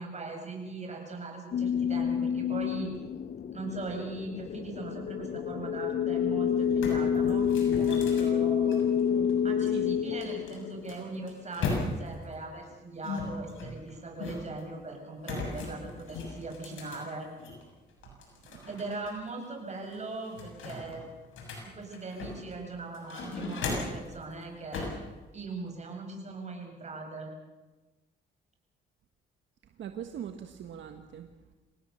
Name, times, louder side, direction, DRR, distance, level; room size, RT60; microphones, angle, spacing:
voice 1, 0.0-2.9 3.5-7.5 7.7-8.8 9.4-17.3 18.7-21.1 21.5-24.9 25.3-27.3, right 3 dB, 35° right, 2 dB, 7.6 m, -40 dB
sound 1, 1.5-11.3, left 8 dB, 45° left, 0.6 m, -28 dB
sound 2, 6.2-6.3 6.6-9.3 10.2-12.2 13.0-14.6 15.2-17.6 18.0-19.1 19.4-19.5 19.9-22.5 22.9-24.1 24.7-25.0, left 3 dB, 75° left, 7.1 m, -37 dB
voice 2, 9.6-10.0 18.1-18.7 29.7-31.5, right 9 dB, 70° right, 6 dB, 1.5 m, -42 dB
26.5 x 18.5 x 7.1 m, 1.2 s
cardioid pair, 90°, 20 cm